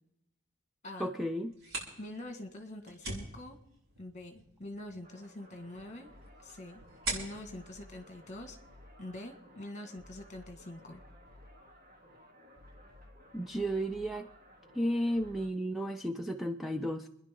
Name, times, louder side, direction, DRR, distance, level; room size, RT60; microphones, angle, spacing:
voice 1, 1.0-1.5 13.3-14.3 14.7-17.1, equal, ahead, 5 dB, 0.5 m, -33 dB
sound 1, 1.4-9.0, right 2 dB, 75° right, 6.0 m, -44 dB
voice 2, 2.0-3.6 4.0-6.1 6.4-6.8 7.1-8.6 9.0-11.0, left 1 dB, 35° left, 6 dB, 1.8 m, -45 dB
sound 2, 5.0-15.5, left 1 dB, 40° right, 3.0 m, -56 dB
27.0 x 10.5 x 3.8 m, 0.84 s
head